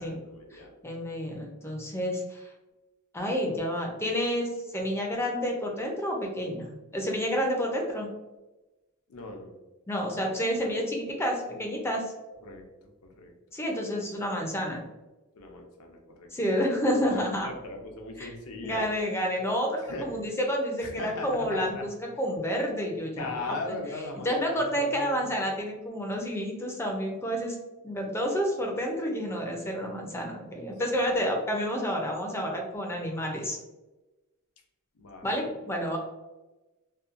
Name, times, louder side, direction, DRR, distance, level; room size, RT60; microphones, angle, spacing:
voice 1, 0.0-0.7 9.1-9.6 12.4-12.6 13.2-13.3 15.3-16.3 17.1-18.8 19.9-20.2 20.8-21.9 23.2-25.4 35.0-35.6, left 2 dB, 85° left, 2 dB, 0.6 m, -39 dB
voice 2, 0.5-2.5 3.1-8.1 9.9-12.1 13.5-14.8 16.3-17.5 18.2-18.3 18.6-21.9 22.2-23.8 24.2-27.6 27.8-33.6 35.2-36.0, equal, 10° left, 0 dB, 0.4 m, -29 dB
2.7 x 2.2 x 2.4 m, 1.1 s
head